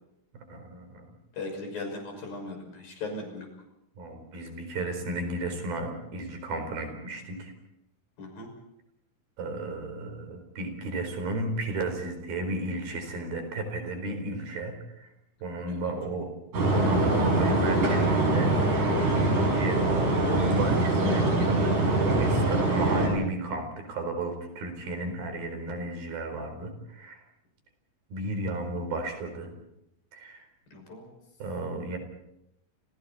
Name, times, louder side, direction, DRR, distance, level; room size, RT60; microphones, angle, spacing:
voice 1, 0.3-1.0 4.0-7.5 9.4-15.1 15.4-16.3 16.6-27.2 28.1-29.5 30.1-30.4 31.4-32.0, right 1 dB, 85° right, 6 dB, 6.1 m, -33 dB
voice 2, 1.3-3.5 8.2-8.5 15.7-15.9 30.7-31.1, left 2 dB, 80° left, 3 dB, 7.9 m, -38 dB
sound 1, 16.5-23.1, right 2 dB, 60° right, 8.4 m, -24 dB
29.5 x 28.5 x 4.3 m, 0.82 s
omnidirectional pair, 4.1 m